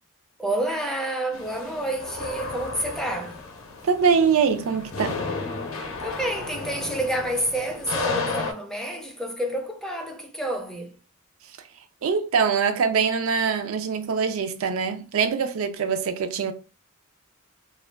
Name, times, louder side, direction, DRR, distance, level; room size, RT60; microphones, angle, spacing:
voice 1, 0.4-3.5 6.0-11.0, right 1 dB, ahead, 0.4 m, -29 dB
sound 1, 1.3-8.5, left 3 dB, 70° left, 0.6 m, -33 dB
voice 2, 3.8-5.2 12.0-16.5, right 6 dB, 85° right, 0.4 m, -23 dB
2.4 x 2.2 x 3.3 m
head